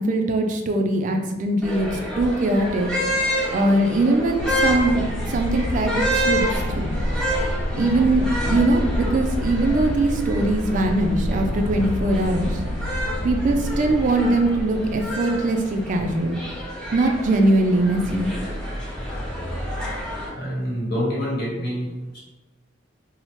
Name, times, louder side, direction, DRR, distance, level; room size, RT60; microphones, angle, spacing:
voice 1, 0.0-2.9 3.5-6.9 7.7-12.6 13.2-16.4 16.9-18.3, right 2 dB, 40° right, 4 dB, 0.3 m, -21 dB
sound 1, 1.6-20.3, equal, 5° left, 0.8 m, -29 dB
sound 2, 4.4-16.4 17.6-17.8, left 1 dB, 85° left, 0.3 m, -28 dB
voice 2, 20.4-21.9, equal, 55° left, -6 dB, 1.1 m, -26 dB
2.8 x 2.0 x 3.0 m, 1.1 s
head